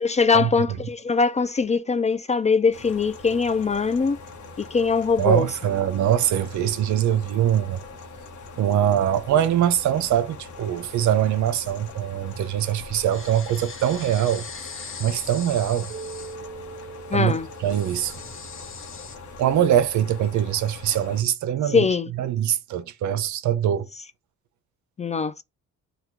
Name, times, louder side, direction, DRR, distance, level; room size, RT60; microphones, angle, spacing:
voice 1, 0.0-4.2 4.6-5.5 17.1-17.5 21.7-22.1 25.0-25.4, left 5 dB, 25° left, 0.3 m, -22 dB
sound 1, 2.7-21.2, left 3 dB, 75° left, 1.1 m, -42 dB
voice 2, 5.2-7.8 8.6-14.5 15.0-15.9 17.1-17.4 17.6-18.2 19.4-21.9 22.1-23.9, right 10 dB, 70° right, 0.7 m, -23 dB
sound 2, 13.1-19.2, left 5 dB, 45° left, 1.2 m, -41 dB
Keyboard (musical), 15.9-19.1, right 5 dB, 35° right, 1.0 m, -42 dB
3.5 x 2.3 x 4.4 m
cardioid pair, 90°, 30 cm